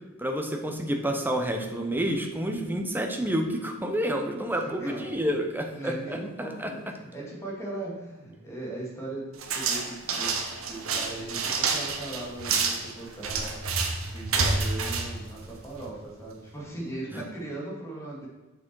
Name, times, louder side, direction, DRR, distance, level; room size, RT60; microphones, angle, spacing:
voice 1, 0.2-6.7 17.1-17.2, equal, 10° right, 3 dB, 0.8 m, -29 dB
voice 2, 4.6-5.1 5.7-10.4 10.6-13.5 14.0-18.3, right 2 dB, 15° left, -4 dB, 2.3 m, -38 dB
sound 1, 9.4-16.0, right 4 dB, 65° right, 1.0 m, -29 dB
6.9 x 6.2 x 4.6 m, 1.2 s
head